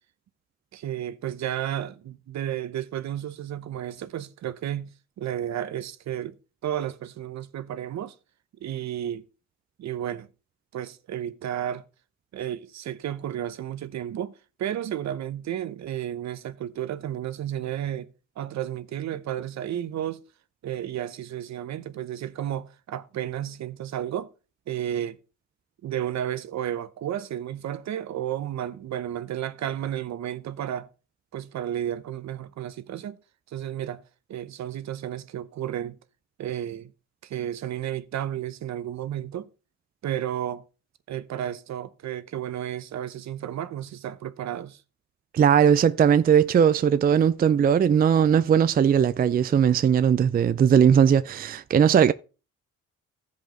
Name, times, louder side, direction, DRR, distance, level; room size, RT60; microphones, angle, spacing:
voice 1, 0.7-4.9 5.2-6.4 6.6-8.1 8.6-9.3 9.8-10.3 10.7-11.8 12.3-18.1 18.4-20.2 20.6-24.3 24.7-25.2 25.8-30.9 31.3-33.2 33.5-34.0 34.3-36.0 36.4-36.9 37.2-39.5 40.0-40.6 41.1-44.8, right 11 dB, 65° right, 0.9 m, -32 dB
voice 2, 45.3-52.1, right 8 dB, 30° right, 0.4 m, -19 dB
15.0 x 5.3 x 3.8 m
cardioid pair, 90°, 30 cm